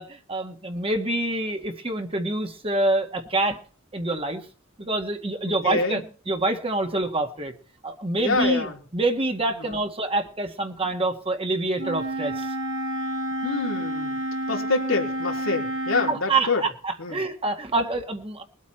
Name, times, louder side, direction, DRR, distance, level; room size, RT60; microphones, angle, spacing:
voice 1, 0.0-3.6 3.9-4.4 4.8-7.5 7.8-12.5 16.1-18.4, right 2 dB, 30° right, 5 dB, 1.8 m, -26 dB
voice 2, 5.6-6.0 8.2-8.8 9.5-9.8 13.4-14.2 14.5-16.6 17.0-17.2, left 3 dB, 90° left, 2 dB, 3.7 m, -26 dB
Wind instrument woodwind instrument, 11.8-16.2, right 1 dB, 65° right, 2.4 m, -29 dB
22.0 x 8.3 x 4.3 m, 0.40 s
head